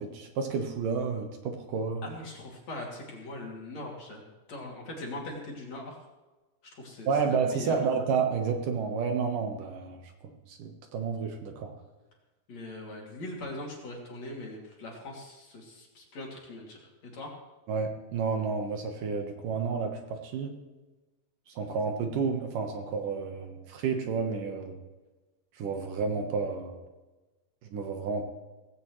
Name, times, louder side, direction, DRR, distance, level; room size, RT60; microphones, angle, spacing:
voice 1, 0.0-2.1 7.1-11.7 17.7-20.5 21.6-24.8 25.6-26.8 27.7-28.2, right 5 dB, 65° right, 4 dB, 2.7 m, -31 dB
voice 2, 2.0-6.0 6.6-7.9 12.5-17.3, left 1 dB, 50° left, -1 dB, 3.8 m, -41 dB
18.0 x 16.0 x 3.2 m, 1.2 s
omnidirectional pair, 4.3 m